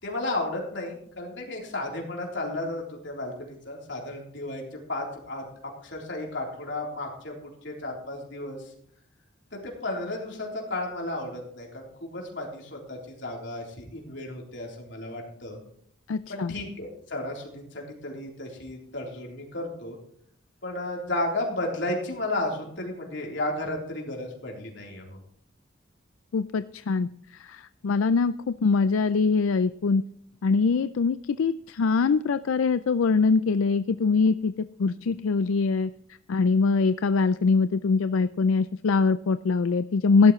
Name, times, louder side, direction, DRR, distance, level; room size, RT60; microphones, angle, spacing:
voice 1, 0.0-8.7 9.5-15.6 16.3-20.0 20.6-25.2, left 2 dB, 65° left, -1 dB, 3.6 m, -33 dB
voice 2, 16.1-16.5 26.3-27.1 27.4-30.0 30.4-34.5 34.8-35.9 36.3-40.3, left 4 dB, 85° left, 12 dB, 0.4 m, -23 dB
16.5 x 12.0 x 3.2 m, 0.65 s
head